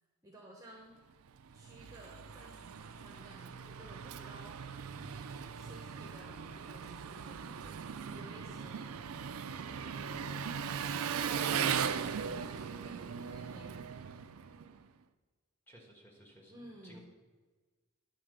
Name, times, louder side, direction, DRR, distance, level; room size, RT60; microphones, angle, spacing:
voice 1, 0.2-1.0 1.5-4.6 5.6-9.0 9.5-13.9 16.5-17.0, right 1 dB, 15° right, -2 dB, 1.0 m, -54 dB
Engine, 1.3-14.8, right 7 dB, 85° right, 0.5 m, -39 dB
voice 2, 15.7-17.0, equal, 10° left, -2 dB, 1.5 m, -57 dB
10.0 x 4.0 x 6.6 m, 1.4 s
head